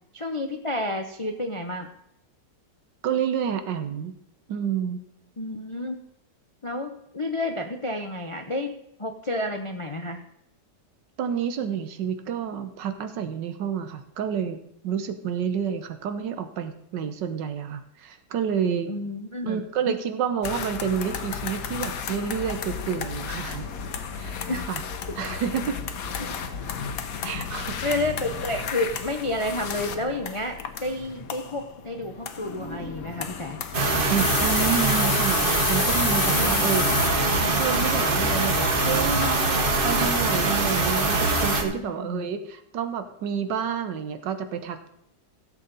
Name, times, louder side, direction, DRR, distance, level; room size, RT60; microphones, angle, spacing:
voice 1, 0.1-1.9 5.4-6.0 6.6-10.2 18.9-20.0 24.4-24.7 26.2-26.3 27.8-33.6 36.3-36.6 41.6-42.3, left 1 dB, 45° left, 4 dB, 0.4 m, -30 dB
voice 2, 3.0-4.1 4.5-5.0 11.2-14.6 14.8-18.9 19.4-23.7 24.1-24.4 24.7-24.8 25.2-25.8 27.2-27.8 34.1-37.1 37.5-44.9, right 7 dB, 85° right, 9 dB, 1.6 m, -29 dB
sound 1, 20.4-39.7, left 7 dB, 60° left, 1.2 m, -33 dB
sound 2, 33.7-41.6, right 2 dB, 35° right, 1.3 m, -23 dB
16.0 x 7.4 x 4.0 m, 0.78 s
omnidirectional pair, 1.9 m